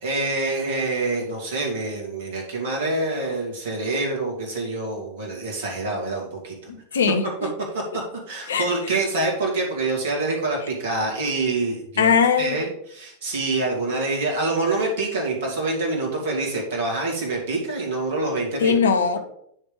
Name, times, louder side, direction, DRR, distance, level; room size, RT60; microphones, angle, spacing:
voice 1, 0.0-6.6 7.7-7.8 8.3-18.8, right 2 dB, 55° right, 2.3 m, -26 dB
voice 2, 6.7-7.5 8.5-8.7 12.0-12.6 18.6-19.2, left 6 dB, 65° left, 0.7 m, -20 dB
9.8 x 3.4 x 5.1 m
figure-of-eight pair, 90°, 0 cm